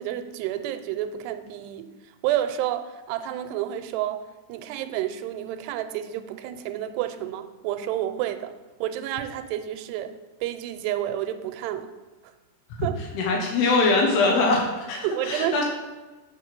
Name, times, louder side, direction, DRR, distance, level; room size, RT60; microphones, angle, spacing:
voice 1, 0.0-1.9 2.2-4.2 4.5-8.5 8.8-10.1 10.4-11.9 12.8-13.0 15.0-15.6, right 12 dB, 90° right, 9 dB, 2.7 m, -30 dB
voice 2, 13.1-15.6, left 3 dB, 75° left, 0 dB, 3.2 m, -22 dB
7.8 x 6.8 x 5.9 m, 1.2 s
omnidirectional pair, 4.8 m